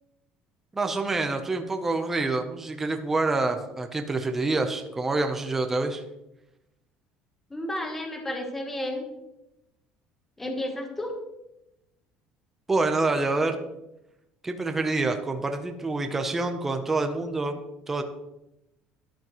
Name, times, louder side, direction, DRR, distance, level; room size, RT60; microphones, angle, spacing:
voice 1, 0.7-6.0 12.7-13.6 14.4-17.6 17.9-18.0, right 3 dB, 10° right, 5 dB, 0.7 m, -27 dB
voice 2, 7.5-9.0 10.4-11.2, left 1 dB, 10° left, 3 dB, 1.1 m, -32 dB
12.5 x 11.0 x 3.0 m, 0.92 s
cardioid pair, 170°, 3 cm